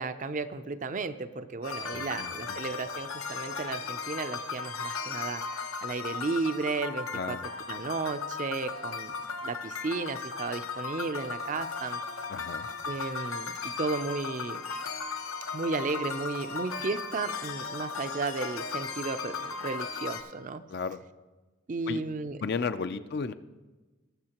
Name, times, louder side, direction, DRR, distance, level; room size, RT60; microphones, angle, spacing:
voice 1, 0.0-5.4 5.8-7.4 7.7-12.0 12.9-14.6 15.5-20.6 21.7-22.4, right 3 dB, 35° right, 10 dB, 0.4 m, -34 dB
sound 1, 1.6-20.2, left 5 dB, 80° left, 0.8 m, -36 dB
voice 2, 1.9-2.6 7.1-7.5 12.3-12.7 20.7-21.0 21.9-22.0 22.4-23.3, left 5 dB, 50° left, 11 dB, 0.4 m, -34 dB
20.0 x 7.0 x 2.9 m, 1.2 s
head